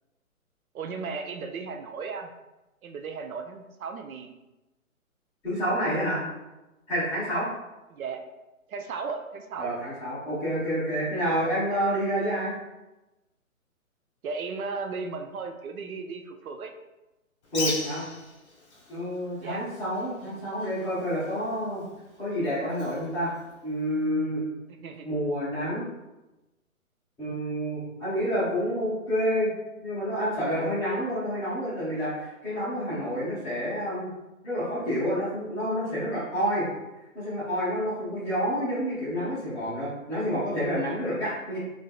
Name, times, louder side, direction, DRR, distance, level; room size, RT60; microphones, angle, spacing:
voice 1, 0.7-2.3 2.8-4.3 7.9-8.2 8.7-9.7 14.2-16.7 19.4-19.6 24.8-25.1, right 4 dB, 75° right, 5 dB, 0.5 m, -35 dB
voice 2, 5.4-6.2 6.9-7.5 9.6-12.6 17.5-18.1 18.9-21.8 22.2-23.4 23.6-24.4 25.0-25.8 27.2-29.5 29.8-34.1 34.4-36.6 37.1-41.6, equal, 5° left, -13 dB, 0.8 m, -28 dB
Bird, 17.4-24.1, left 2 dB, 50° left, 1.0 m, -40 dB
3.2 x 2.5 x 2.3 m, 1.0 s
hypercardioid pair, 145°, 42 cm